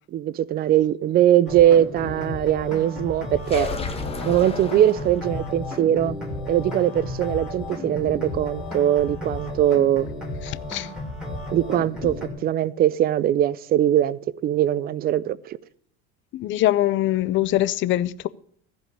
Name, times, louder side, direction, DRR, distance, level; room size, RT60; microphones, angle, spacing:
voice 1, 0.1-3.7 4.3-6.2 6.5-10.1 11.5-12.2 12.4-15.6, right 11 dB, 30° right, 0.4 m, -21 dB
sound 1, 1.5-12.3, left 2 dB, ahead, 2.7 m, -33 dB
sound 2, 3.4-5.5, left 4 dB, 15° left, 1.3 m, -32 dB
voice 2, 10.4-10.9 12.0-12.2 16.3-18.3, left 14 dB, 35° left, 0.5 m, -23 dB
15.0 x 5.3 x 8.3 m
cardioid pair, 135°, 34 cm